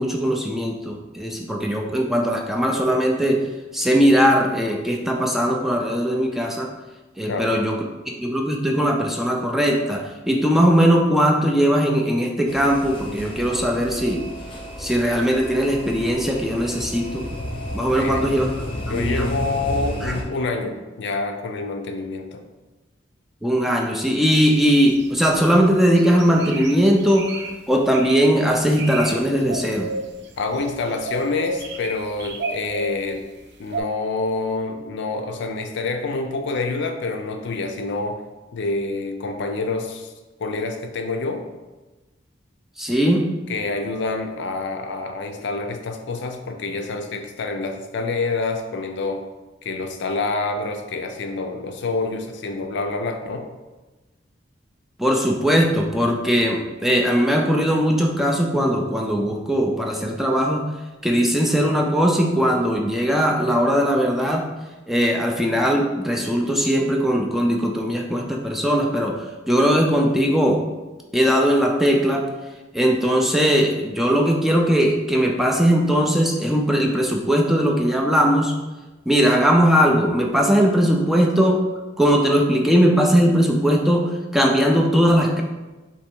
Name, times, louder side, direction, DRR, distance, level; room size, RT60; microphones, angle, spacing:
voice 1, 0.0-3.4 3.7-6.7 7.2-7.8 8.1-14.2 14.8-17.3 17.7-18.5 18.9-19.3 20.0-20.1 23.4-27.3 27.7-29.9 42.8-43.2 55.0-60.6 61.0-64.5 64.9-70.6 71.1-72.3 72.7-78.5 79.1-81.6 82.0-85.4, equal, ahead, 0 dB, 0.3 m, -19 dB
sound 1, 12.5-20.2, left 1 dB, 30° left, 0.7 m, -32 dB
voice 2, 18.0-18.5 18.9-22.4 30.4-33.3 33.6-38.2 38.5-40.1 40.4-41.4 43.5-49.2 49.6-53.5, left 3 dB, 65° left, 5 dB, 0.5 m, -27 dB
sound 2, 24.3-25.5 25.9-27.5 27.9-28.3 28.6-29.1 29.4-30.7 31.0-33.1 33.7-33.8, right 2 dB, 60° right, 0.5 m, -32 dB
3.3 x 3.0 x 4.4 m, 1.2 s
head